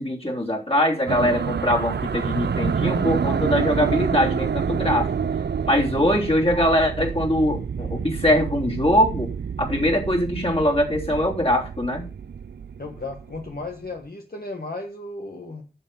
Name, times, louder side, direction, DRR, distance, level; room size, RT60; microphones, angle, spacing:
voice 1, 0.0-5.1 5.7-9.3 9.6-12.1, left 1 dB, 35° left, 0 dB, 3.3 m, -22 dB
sound 1, 1.1-13.7, right 6 dB, 75° right, 0.4 m, -28 dB
voice 2, 12.8-15.6, left 2 dB, 60° left, 2 dB, 1.5 m, -35 dB
9.8 x 7.0 x 5.4 m, 0.31 s
wide cardioid pair, 45°, 18 cm